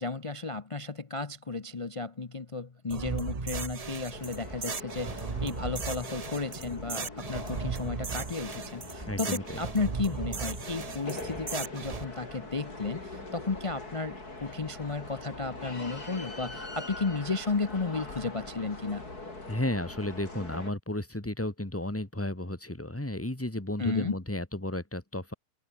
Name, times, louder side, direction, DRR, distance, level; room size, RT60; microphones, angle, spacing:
voice 1, 0.0-19.0 23.8-24.2, left 3 dB, 30° left, 0.6 m, -33 dB
sound 1, 2.9-12.0, right 5 dB, 30° right, 0.8 m, -36 dB
sound 2, 4.1-20.7, left 2 dB, 70° left, 6.0 m, -42 dB
voice 2, 9.1-9.6 19.5-25.3, left 1 dB, 10° left, 2.2 m, -33 dB
omnidirectional pair, 1.7 m